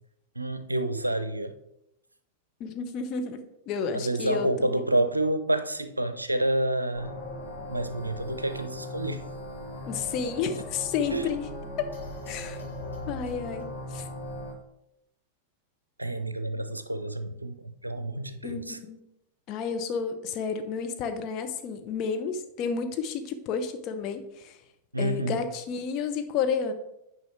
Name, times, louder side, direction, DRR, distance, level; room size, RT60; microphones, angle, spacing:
voice 1, 0.4-1.5 3.9-7.1 7.7-9.3 11.1-11.3 16.0-18.8 24.9-25.4, right 1 dB, 85° right, 0.5 m, -28 dB
voice 2, 2.6-4.8 9.9-11.5 12.3-12.6 13.1-14.0 18.4-19.0 19.5-24.6 25.0-26.7, left 6 dB, 40° left, 0.9 m, -31 dB
sound 1, 6.9-14.5, left 1 dB, 75° left, 2.6 m, -38 dB
9.1 x 5.3 x 3.3 m
figure-of-eight pair, 90°, 0 cm